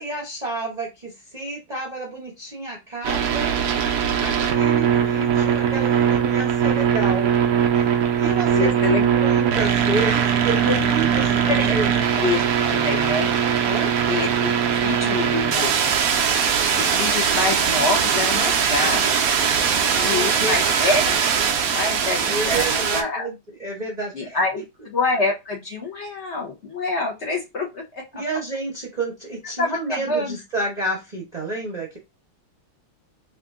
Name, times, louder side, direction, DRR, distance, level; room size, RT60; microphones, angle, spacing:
voice 1, 0.0-3.5 4.2-7.3 7.7-12.1 13.7-13.9 19.7-20.6 22.3-24.4 28.1-32.0, right 2 dB, 35° right, -1 dB, 0.7 m, -30 dB
sound 1, 3.0-23.0, right 7 dB, 75° right, 0.8 m, -20 dB
voice 2, 8.5-9.0 10.6-10.8 11.1-11.8 12.2-13.3 14.1-15.9 16.8-19.3 19.9-21.3 21.7-23.3 24.1-28.0 29.6-30.4, left 3 dB, 50° left, 0 dB, 0.9 m, -26 dB
3.6 x 2.6 x 3.6 m, 0.23 s
omnidirectional pair, 2.3 m